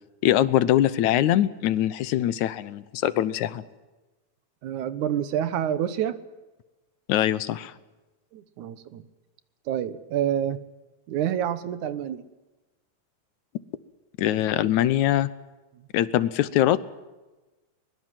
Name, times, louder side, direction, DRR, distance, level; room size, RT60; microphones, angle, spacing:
voice 1, 0.2-3.6 7.1-7.7 14.2-15.3 15.9-16.9, left 12 dB, 80° left, 17 dB, 2.3 m, -23 dB
voice 2, 4.6-6.2 8.3-9.0 9.7-10.6 11.1-12.2, right 10 dB, 85° right, 14 dB, 2.7 m, -27 dB
22.5 x 21.0 x 7.7 m, 1.1 s
omnidirectional pair, 3.3 m